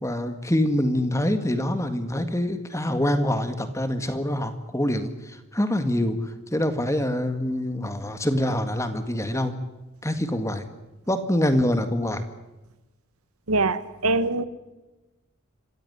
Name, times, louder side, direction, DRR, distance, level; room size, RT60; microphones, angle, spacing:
voice 1, 0.0-9.5 10.0-10.6 11.1-12.2, left 1 dB, 15° left, 9 dB, 1.9 m, -25 dB
voice 2, 13.5-14.4, right 2 dB, 85° right, 14 dB, 1.4 m, -23 dB
26.5 x 15.5 x 10.0 m, 1.1 s
head